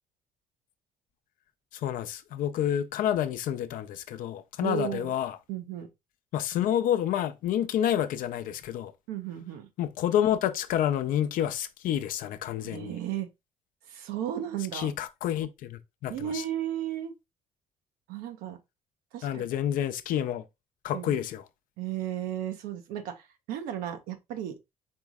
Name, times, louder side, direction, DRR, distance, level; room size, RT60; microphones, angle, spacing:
voice 1, 1.7-5.4 6.3-8.9 9.8-13.0 14.7-16.4 19.2-20.4 20.8-21.4, left 10 dB, 70° left, 0.6 m, -29 dB
voice 2, 4.6-5.1 5.5-5.9 9.1-9.7 12.6-13.3 13.9-14.9 16.1-17.1 18.1-18.6 19.1-19.4 20.9-21.2 21.8-24.6, right 11 dB, 85° right, 0.8 m, -34 dB
4.5 x 3.1 x 3.5 m
supercardioid pair, 80°, 15 cm